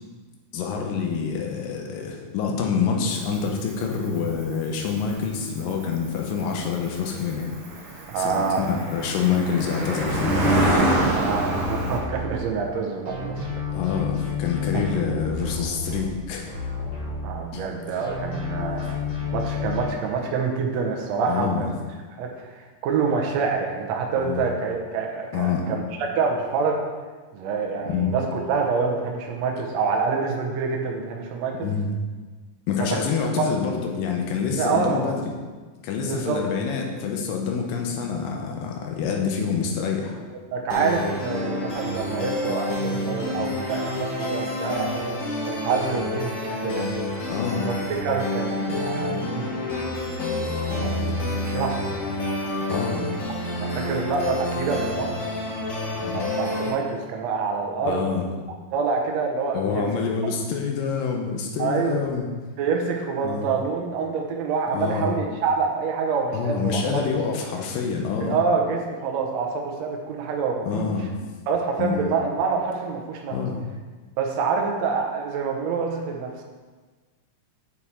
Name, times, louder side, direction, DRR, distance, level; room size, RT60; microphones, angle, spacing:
voice 1, 0.5-7.5 8.2-10.5 13.7-16.4 17.5-17.7 18.6-18.9 21.3-21.7 24.2-24.5 25.3-25.7 27.9-28.2 31.6-31.9 32.7-35.2 35.8-40.2 43.3-43.6 47.3-47.7 52.7-53.1 56.0-56.3 57.9-58.3 59.5-62.3 63.2-63.6 64.7-65.2 66.3-68.4 70.7-71.1 71.8-72.1 73.3-73.6, left 6 dB, 90° left, 1 dB, 2.4 m, -27 dB
Cricket, 3.1-12.0, right 1 dB, 60° right, 2.1 m, -27 dB
voice 2, 8.1-8.7 11.1-13.5 14.7-14.8 17.2-19.0 19.3-21.8 22.1-26.8 27.3-31.7 32.8-33.0 33.4-33.5 34.6-35.2 36.0-36.4 40.5-45.2 45.4-46.8 47.5-47.8 48.0-49.5 50.7-51.9 53.0-53.1 53.6-55.3 56.1-58.3 58.7-59.9 60.2-60.3 61.6-62.1 62.6-67.0 68.2-70.9 71.5-73.3 74.2-76.4, right 5 dB, 75° right, 1 dB, 1.6 m, -26 dB
sound 1, 10.0-12.8 13.1-17.7 18.0-19.9, left 4 dB, 40° left, 2.0 m, -31 dB
sound 2, 40.7-56.7, left 1 dB, 55° left, 1.3 m, -28 dB
7.1 x 4.6 x 4.2 m, 1.4 s
omnidirectional pair, 3.9 m